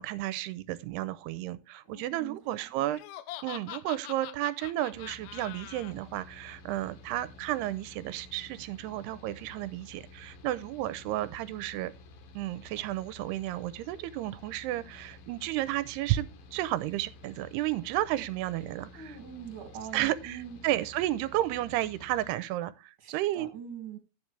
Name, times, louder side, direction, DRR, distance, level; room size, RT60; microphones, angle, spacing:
voice 1, 0.0-3.0 3.4-11.9 12.3-19.2 19.9-23.5, right 14 dB, 80° right, 2.7 m, -32 dB
voice 2, 1.9-2.6 18.9-20.6 23.0-24.0, right 8 dB, 35° right, 2.7 m, -43 dB
Laughter, 2.9-5.9, left 12 dB, 90° left, 1.8 m, -43 dB
Mechanical fan, 4.9-22.4, left 2 dB, 65° left, 3.0 m, -52 dB
12.5 x 7.8 x 3.3 m
omnidirectional pair, 4.8 m